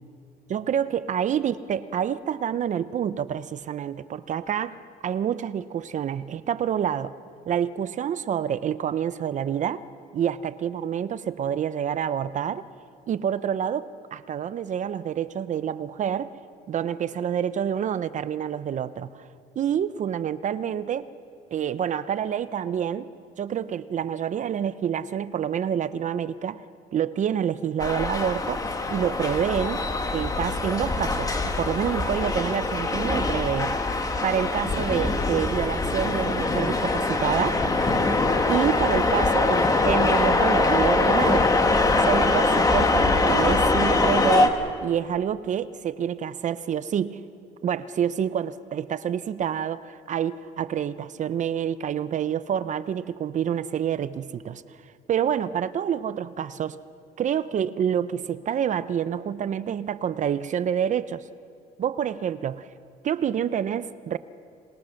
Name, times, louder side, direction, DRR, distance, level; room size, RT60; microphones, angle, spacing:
voice 1, 0.5-7.2 7.5-9.8 10.1-12.7 13.1-16.3 16.7-19.3 19.6-21.1 21.5-23.1 23.4-26.6 26.9-28.6 28.9-29.8 30.1-33.8 34.2-37.6 38.5-41.5 42.0-47.2 47.6-54.6 55.1-56.8 57.2-61.3 61.8-62.7 63.0-64.2, right 9 dB, 45° right, 14 dB, 0.7 m, -27 dB
sound 1, 27.8-44.5, left 2 dB, 20° left, 2.0 m, -23 dB
26.0 x 21.0 x 6.5 m, 2.4 s
cardioid pair, 110°, 17 cm